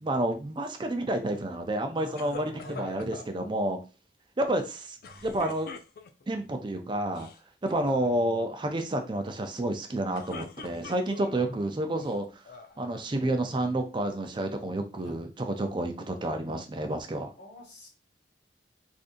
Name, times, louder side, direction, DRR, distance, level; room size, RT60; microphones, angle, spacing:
voice 1, 0.0-3.8 4.4-5.0 5.2-5.7 6.3-7.3 7.6-12.2 12.8-17.3, right 1 dB, 25° right, 5 dB, 0.5 m, -30 dB
voice 2, 2.0-3.1 7.7-7.8 11.4-12.1 15.0-15.2 17.4-17.9, left 1 dB, 75° left, -1 dB, 1.4 m, -45 dB
sound 1, 2.2-3.3 5.0-6.3 7.0-7.4 7.7-8.1 9.9-11.4 12.0-12.8, left 4 dB, 55° left, 0.4 m, -44 dB
3.7 x 2.6 x 2.5 m, 0.32 s
head